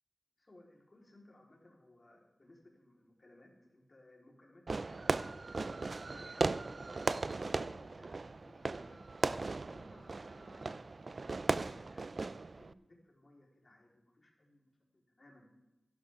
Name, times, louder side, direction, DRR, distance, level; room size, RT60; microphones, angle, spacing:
voice 1, 0.4-9.0 9.6-10.7 11.3-14.7 15.1-15.5, left 1 dB, 45° left, -2 dB, 4.1 m, -61 dB
Fireworks, 4.7-12.7, right 3 dB, 60° right, 0.4 m, -37 dB
16.5 x 12.0 x 3.7 m, 0.97 s
wide cardioid pair, 55°, 0 cm